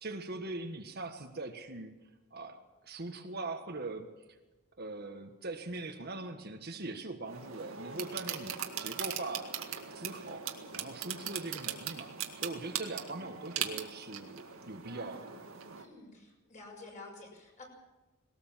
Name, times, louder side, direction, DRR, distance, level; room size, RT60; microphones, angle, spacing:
voice 1, 0.0-1.9 2.3-2.6 2.8-4.1 4.8-9.6 9.9-12.1 12.4-15.3, right 2 dB, 45° right, 5 dB, 1.6 m, -41 dB
sound 1, 7.3-15.9, right 8 dB, 65° right, 2.0 m, -40 dB
voice 2, 15.7-17.6, left 2 dB, 35° left, 0 dB, 6.4 m, -50 dB
21.0 x 18.0 x 7.5 m, 1.1 s
head